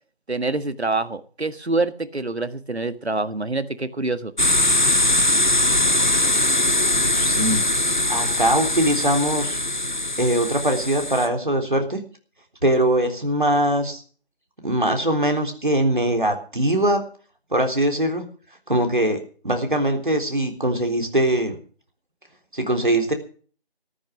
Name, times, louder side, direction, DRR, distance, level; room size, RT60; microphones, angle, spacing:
voice 1, 0.3-4.3, right 3 dB, 85° right, 12 dB, 1.8 m, -26 dB
sound 1, 4.4-11.3, left 1 dB, 45° left, 1.3 m, -21 dB
voice 2, 6.9-7.6 8.1-9.6 10.2-12.0 12.6-14.0 14.6-17.0 17.5-18.2 18.7-21.6 22.5-23.1, right 1 dB, 50° right, 4 dB, 3.6 m, -22 dB
13.5 x 13.0 x 6.3 m, 0.41 s
figure-of-eight pair, 180°, 32 cm